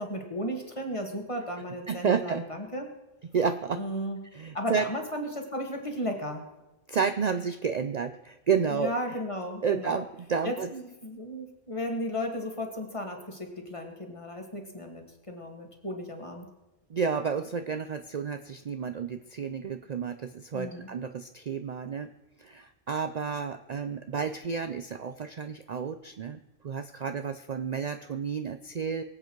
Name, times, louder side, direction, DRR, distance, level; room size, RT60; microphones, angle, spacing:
voice 1, 0.0-2.9 3.7-4.2 4.5-6.4 8.7-10.1 10.4-16.5 20.5-20.9, equal, 30° left, 2 dB, 2.0 m, -35 dB
voice 2, 1.9-2.4 3.3-3.8 4.3-4.9 6.9-8.9 9.6-10.7 16.9-22.1 22.4-29.0, right 6 dB, 50° right, 9 dB, 0.6 m, -31 dB
23.0 x 8.2 x 4.6 m, 1.0 s
omnidirectional pair, 1.1 m